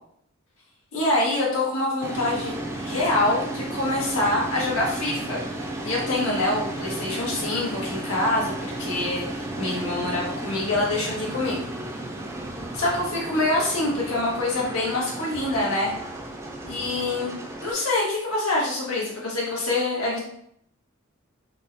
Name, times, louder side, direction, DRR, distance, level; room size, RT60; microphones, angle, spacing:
voice 1, 0.9-2.5 2.8-5.4 5.8-11.7 12.7-15.9 16.6-20.2, left 2 dB, 90° left, -4 dB, 1.3 m, -25 dB
sound 1, 2.0-17.7, right 1 dB, 15° right, 0.5 m, -34 dB
3.7 x 2.1 x 3.9 m, 0.70 s
head